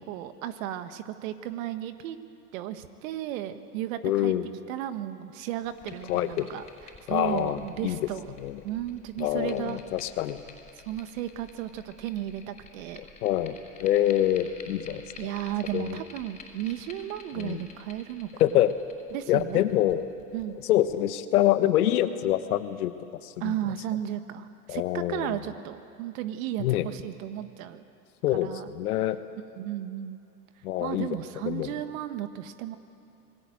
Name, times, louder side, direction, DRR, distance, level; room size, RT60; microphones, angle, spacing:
voice 1, 0.1-2.2 2.5-4.4 4.7-6.6 7.1-8.3 8.6-9.8 10.8-13.0 15.2-18.6 19.1-19.6 20.3-20.6 23.4-27.8 28.3-28.7 29.6-30.2 30.8-32.8, right 12 dB, 60° right, 10 dB, 1.6 m, -34 dB
voice 2, 4.0-4.4 6.1-6.5 7.1-8.0 8.4-8.6 9.2-10.4 13.0-15.0 15.7-16.0 17.4-17.6 18.4-18.7 19.3-20.0 20.6-22.9 23.2-23.5 24.7-25.4 26.6-26.9 28.2-29.2 30.6-31.1 31.4-31.7, left 13 dB, 70° left, 11 dB, 1.5 m, -26 dB
sound 1, 5.6-20.9, left 4 dB, 15° left, 5.3 m, -50 dB
27.5 x 20.5 x 7.8 m, 2.5 s
hypercardioid pair, 105°, 47 cm